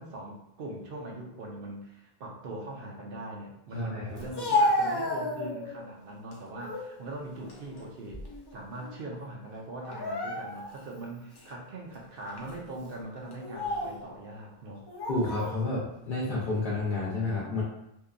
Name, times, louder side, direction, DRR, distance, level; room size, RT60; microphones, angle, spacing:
voice 1, 0.0-8.2 8.5-14.8, right 1 dB, 65° right, -1 dB, 0.7 m, -41 dB
voice 2, 3.7-4.2 15.1-17.6, left 2 dB, 60° left, -7 dB, 0.7 m, -30 dB
Speech, 4.2-5.8 6.3-6.9 7.3-8.5 8.8-9.0 9.8-10.8 11.4-11.5 12.3-12.5 13.3-14.0 14.9-15.6, left 1 dB, 40° left, 0.3 m, -31 dB
2.7 x 2.2 x 2.4 m, 0.80 s
omnidirectional pair, 1.0 m